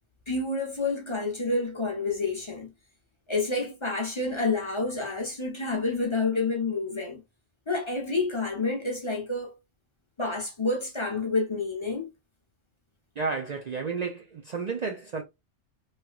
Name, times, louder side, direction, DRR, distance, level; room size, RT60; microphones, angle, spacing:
voice 1, 0.3-2.7 3.3-7.2 7.7-9.6 10.2-12.1, left 3 dB, 30° left, 0.8 m, -29 dB
voice 2, 13.2-15.2, right 4 dB, 50° right, 0.5 m, -32 dB
3.1 x 3.0 x 2.3 m
omnidirectional pair, 1.2 m